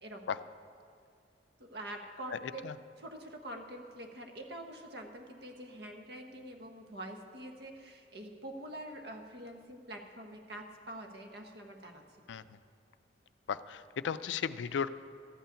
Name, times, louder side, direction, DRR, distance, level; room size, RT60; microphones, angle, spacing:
voice 1, 1.6-2.6 3.0-12.0, right 1 dB, 60° right, 3 dB, 1.2 m, -45 dB
voice 2, 2.3-2.8 12.3-12.6 13.5-14.9, left 7 dB, 80° left, 14 dB, 0.4 m, -36 dB
13.5 x 5.6 x 8.8 m, 2.2 s
head